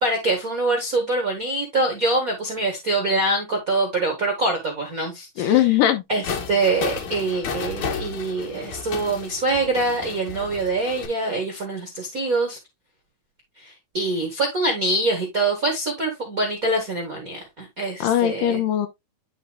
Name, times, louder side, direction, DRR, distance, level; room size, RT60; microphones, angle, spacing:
voice 1, 0.0-5.6 6.1-12.6 13.6-18.6, right 2 dB, 45° right, 1.1 m, -24 dB
voice 2, 5.4-6.0 18.0-18.9, left 11 dB, 75° left, 2.3 m, -20 dB
sound 1, 6.2-11.1, left 5 dB, 60° left, 2.5 m, -32 dB
9.7 x 5.5 x 2.3 m
omnidirectional pair, 4.2 m